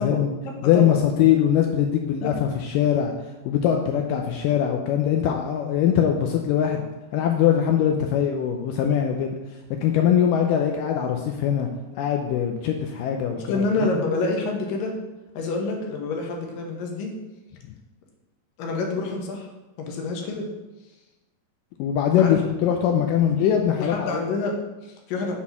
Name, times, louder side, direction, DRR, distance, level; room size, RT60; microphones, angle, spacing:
voice 1, 0.0-1.0 2.2-2.3 13.4-15.0 15.3-17.1 18.6-19.5 19.8-20.5 22.2-22.4 23.4-23.5 23.8-25.3, left 3 dB, 70° left, 1 dB, 2.6 m, -28 dB
voice 2, 0.6-3.1 3.5-6.9 7.1-9.3 9.8-11.7 12.0-13.4 13.8-13.9 21.8-24.2, left 9 dB, 85° left, 3 dB, 1.9 m, -22 dB
7.4 x 4.2 x 5.8 m, 1.1 s
omnidirectional pair, 4.4 m